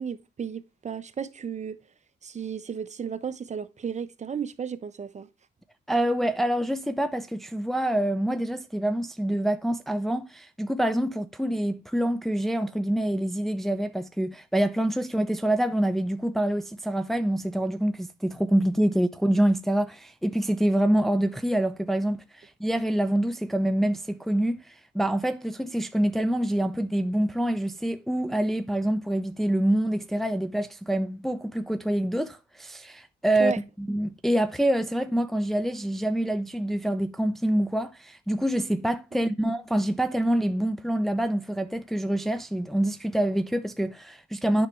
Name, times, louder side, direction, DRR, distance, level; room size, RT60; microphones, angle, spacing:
voice 1, 0.0-1.8 2.2-5.3 33.4-33.6 39.1-39.2, right 7 dB, 35° right, 0.9 m, -34 dB
voice 2, 5.9-44.7, right 1 dB, ahead, 0.6 m, -26 dB
8.7 x 5.7 x 3.1 m
cardioid pair, 90°, 20 cm